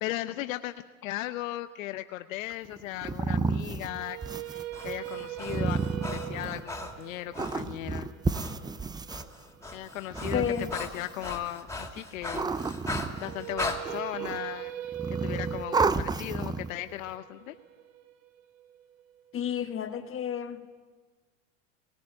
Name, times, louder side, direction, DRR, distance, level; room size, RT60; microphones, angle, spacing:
voice 1, 0.0-4.2 4.5-5.8 6.1-8.1 9.7-10.4 10.8-12.5 13.2-14.7 15.1-17.6, left 15 dB, 85° left, 10 dB, 0.8 m, -37 dB
sound 1, 2.5-6.8 7.3-9.2 10.0-11.2 12.0-13.5 13.8-14.5 14.9-16.8, right 4 dB, 10° right, 0.5 m, -31 dB
sound 2, 3.8-9.9 13.1-19.2, right 12 dB, 75° right, 1.3 m, -41 dB
Breathing, 4.5-7.7 8.3-8.6 8.9-13.8, left 2 dB, 5° left, 2.7 m, -39 dB
voice 2, 10.3-10.7 19.3-20.6, left 8 dB, 35° left, 7 dB, 1.4 m, -31 dB
18.5 x 17.0 x 8.7 m, 1.4 s
supercardioid pair, 105°, 39 cm